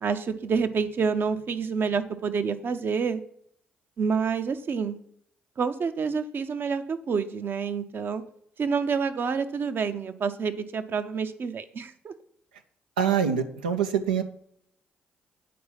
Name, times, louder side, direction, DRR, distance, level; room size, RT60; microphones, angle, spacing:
voice 1, 0.0-3.2 4.0-5.0 5.6-8.2 8.6-12.1, right 5 dB, 50° right, 11 dB, 0.7 m, -28 dB
voice 2, 13.0-14.2, right 7 dB, 90° right, 7 dB, 0.5 m, -24 dB
8.5 x 4.7 x 5.7 m, 0.70 s
hypercardioid pair, 45°, 5 cm